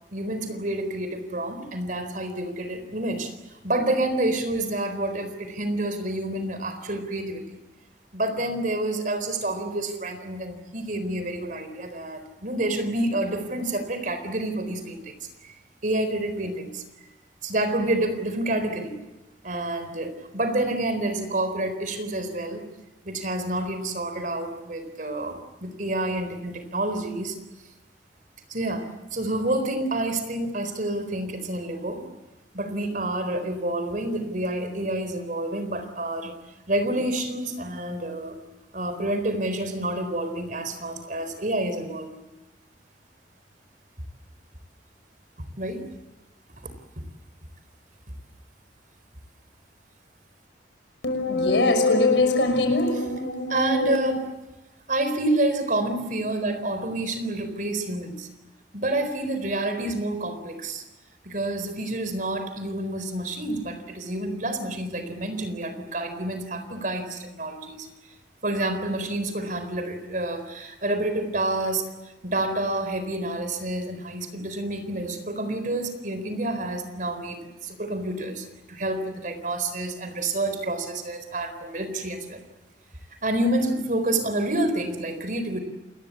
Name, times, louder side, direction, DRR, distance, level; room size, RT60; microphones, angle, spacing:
voice 1, 0.1-3.3 3.6-7.4 8.1-15.2 15.4-15.5 15.8-17.1 17.4-19.0 19.4-22.6 23.0-27.4 28.5-32.1 32.5-36.4 36.7-38.4 38.7-42.2 45.6-45.9 53.5-54.2 54.9-58.3 58.7-60.8 61.2-67.9 68.4-71.9 72.2-82.4 83.2-85.6, right 1 dB, 50° right, 9 dB, 4.2 m, -28 dB
voice 2, 51.0-54.0, left 2 dB, 85° left, 7 dB, 6.1 m, -22 dB
28.5 x 21.0 x 8.4 m, 1.1 s
head